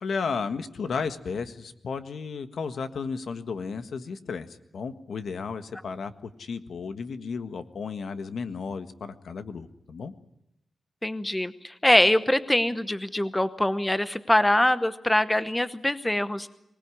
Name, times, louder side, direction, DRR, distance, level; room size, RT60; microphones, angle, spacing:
voice 1, 0.0-10.1, left 5 dB, 75° left, 10 dB, 1.6 m, -33 dB
voice 2, 11.0-16.5, left 1 dB, 10° left, 13 dB, 0.9 m, -23 dB
24.5 x 19.5 x 10.0 m, 0.85 s
wide cardioid pair, 155°, 0 cm